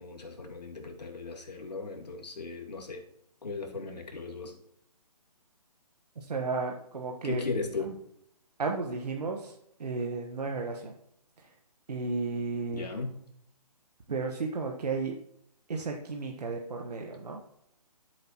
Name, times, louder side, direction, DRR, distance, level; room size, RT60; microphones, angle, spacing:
voice 1, 0.0-3.0 3.4-4.5 7.2-7.9 12.7-13.2, left 3 dB, 90° left, 1 dB, 2.4 m, -36 dB
voice 2, 6.2-7.4 7.8-7.9 8.6-10.9 11.4-11.5 11.9-12.9 14.1-15.2 15.7-17.4, right 4 dB, 75° right, 1 dB, 1.4 m, -33 dB
13.5 x 7.9 x 3.1 m, 0.74 s
hypercardioid pair, 150°, 20 cm